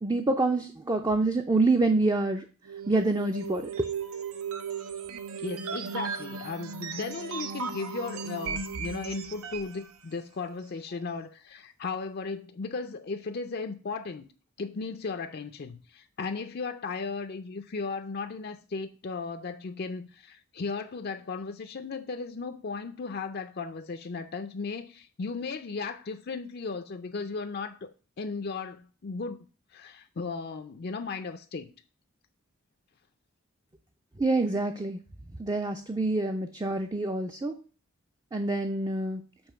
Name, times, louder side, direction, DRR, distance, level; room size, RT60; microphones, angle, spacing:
voice 1, 0.0-2.5 2.9-3.8 34.2-35.0 35.4-37.5 38.3-39.2, right 2 dB, 20° right, 0.4 m, -26 dB
sound 1, 2.7-9.8, right 5 dB, 90° right, 0.7 m, -36 dB
voice 2, 5.4-14.3 14.6-29.5 29.7-31.7, left 4 dB, 50° left, 0.5 m, -36 dB
7.1 x 3.1 x 5.5 m
head